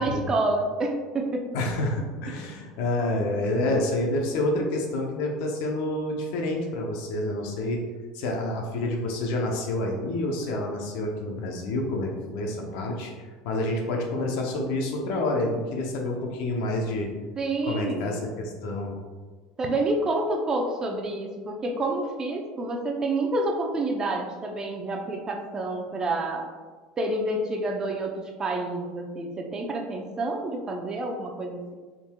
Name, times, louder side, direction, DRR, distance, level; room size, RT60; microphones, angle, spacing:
voice 1, 0.0-1.5 17.4-18.4 19.6-26.5 27.0-31.7, right 2 dB, 25° right, 2 dB, 0.6 m, -28 dB
voice 2, 1.5-7.8 8.1-17.1 17.6-19.0, left 1 dB, 70° left, 1 dB, 0.7 m, -28 dB
4.2 x 3.7 x 2.2 m, 1.4 s
supercardioid pair, 120°, 3 cm